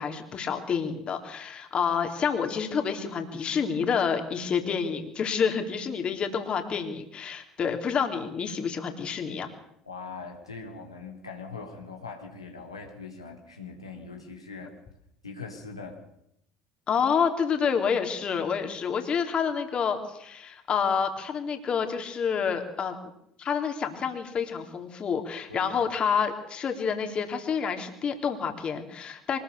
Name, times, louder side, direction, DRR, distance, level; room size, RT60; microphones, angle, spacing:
voice 1, 0.0-9.5 16.9-23.0 23.4-29.4, left 6 dB, 35° left, 5 dB, 3.7 m, -28 dB
voice 2, 9.8-14.7 15.2-16.0 25.5-25.7, left 4 dB, 85° left, 1 dB, 3.3 m, -41 dB
24.5 x 20.0 x 7.0 m, 0.75 s
figure-of-eight pair, 65°, 3 cm